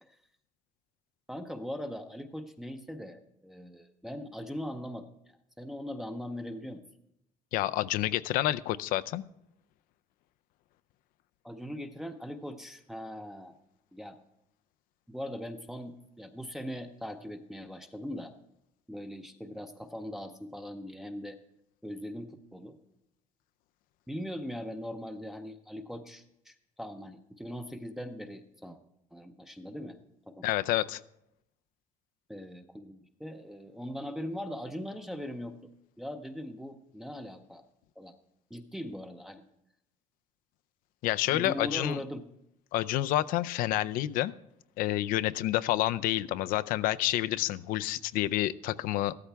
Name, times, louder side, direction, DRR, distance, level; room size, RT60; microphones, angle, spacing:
voice 1, 1.3-6.8 11.4-13.5 13.9-14.2 15.1-18.3 18.9-21.4 21.8-22.8 24.1-28.8 29.1-30.0 30.3-30.5 32.3-35.6 36.0-37.6 38.0-38.1 38.5-39.4 41.3-42.2, equal, 5° right, 5 dB, 0.6 m, -40 dB
voice 2, 7.5-9.2 30.4-31.0 41.0-42.0 42.7-44.3 44.8-49.1, left 14 dB, 85° left, 14 dB, 0.5 m, -29 dB
15.0 x 13.0 x 3.4 m, 0.81 s
cardioid pair, 165°, 14 cm